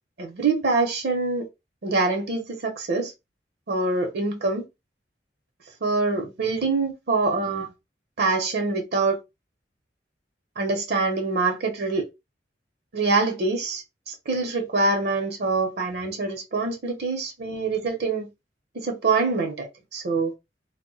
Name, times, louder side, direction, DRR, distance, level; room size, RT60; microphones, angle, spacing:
voice 1, 0.2-1.4 1.8-3.1 3.7-4.6 5.8-7.7 8.2-9.2 10.6-12.1 12.9-18.3 18.7-20.3, right 3 dB, 65° right, 0.7 m, -25 dB
2.2 x 2.1 x 3.8 m
head